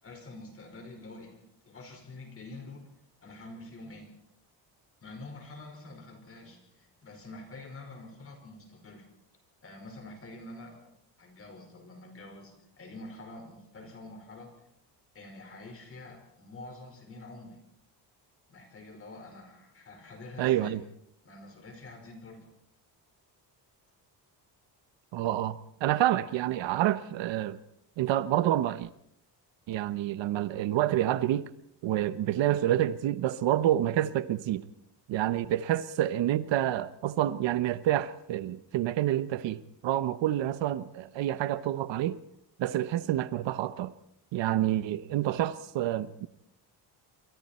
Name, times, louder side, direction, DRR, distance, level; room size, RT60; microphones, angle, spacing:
voice 1, 0.0-2.9 3.2-4.1 5.0-9.0 9.6-10.9 11.2-14.5 15.1-17.6 18.5-20.8 21.2-22.5, left 2 dB, 30° left, 5.2 m, -47 dB
voice 2, 20.4-20.8 25.1-27.6 28.0-28.9 29.7-31.5 31.8-34.6 35.1-42.2 42.6-43.9 44.3-46.3, right 13 dB, 80° right, 1.1 m, -28 dB
28.0 x 23.5 x 4.4 m
cardioid pair, 175°, 44 cm